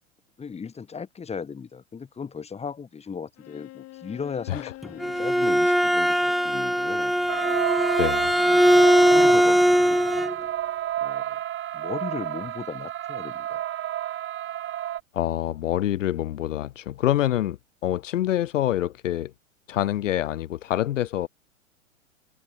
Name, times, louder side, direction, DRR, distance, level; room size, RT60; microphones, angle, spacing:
voice 1, 0.4-7.1 8.4-8.6 9.0-10.2 11.0-11.4 11.7-13.6, left 6 dB, 15° left, 2.8 m, -37 dB
Bowed string instrument, 3.4-7.7, left 17 dB, 40° left, 5.4 m, -45 dB
Bowed string instrument 2, 4.8-10.3, equal, ahead, 0.7 m, -20 dB
sound 1, 7.3-15.0, right 12 dB, 30° right, 3.4 m, -30 dB
voice 2, 8.0-8.3 15.1-19.3 19.7-21.3, left 13 dB, 70° left, 0.7 m, -26 dB
hypercardioid pair, 100°, 39 cm